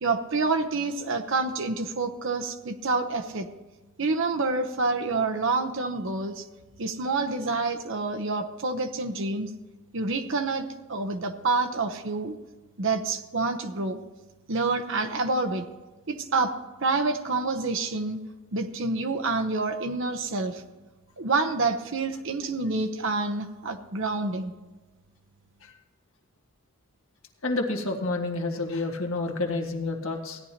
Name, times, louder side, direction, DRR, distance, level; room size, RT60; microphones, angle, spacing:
voice 1, 0.0-3.5 4.0-6.5 6.8-9.5 9.9-12.3 12.8-14.0 14.5-15.6 16.1-16.5 16.8-18.2 18.5-20.6 21.2-24.5, right 3 dB, 60° right, 6 dB, 0.9 m, -27 dB
voice 2, 27.4-30.4, left 2 dB, 65° left, 2 dB, 1.6 m, -29 dB
16.5 x 11.0 x 2.9 m, 1.2 s
head